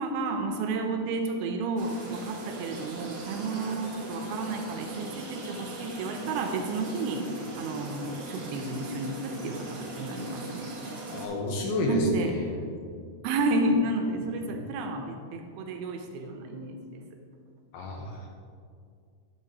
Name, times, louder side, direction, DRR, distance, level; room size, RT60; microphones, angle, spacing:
voice 1, 0.0-10.7 11.9-12.4 13.2-17.0, right 2 dB, 80° right, 4 dB, 2.4 m, -31 dB
sound 1, 1.8-11.3, right 2 dB, 50° right, 1.9 m, -39 dB
voice 2, 11.1-12.4 17.7-18.3, left 1 dB, 75° left, 0 dB, 2.6 m, -29 dB
10.5 x 7.5 x 2.8 m, 2.3 s
omnidirectional pair, 4.7 m